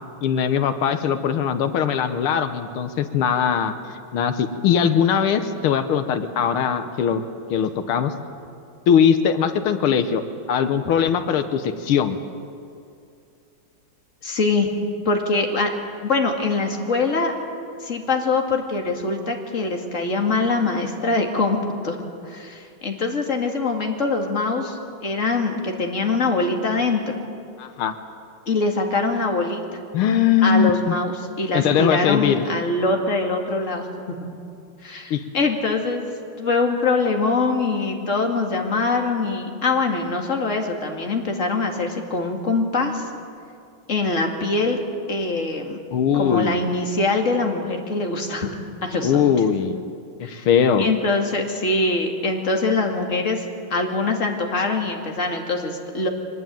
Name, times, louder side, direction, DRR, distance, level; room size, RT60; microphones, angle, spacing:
voice 1, 0.2-3.7 4.1-7.2 7.5-8.1 8.9-10.2 10.5-12.2 27.6-27.9 29.9-31.0 31.5-32.5 35.1-35.2 45.9-46.6 49.0-49.8 50.2-50.9, left 8 dB, 90° left, 9 dB, 1.9 m, -20 dB
voice 2, 14.2-14.7 15.1-15.7 16.0-17.3 17.8-27.1 28.5-29.6 30.4-34.2 34.8-43.0 43.9-44.8 45.1-45.8 46.1-48.5 48.8-49.3 50.2-50.5 50.8-56.1, left 3 dB, 35° left, 2 dB, 2.5 m, -23 dB
23.5 x 20.0 x 9.2 m, 2.5 s
omnidirectional pair, 2.3 m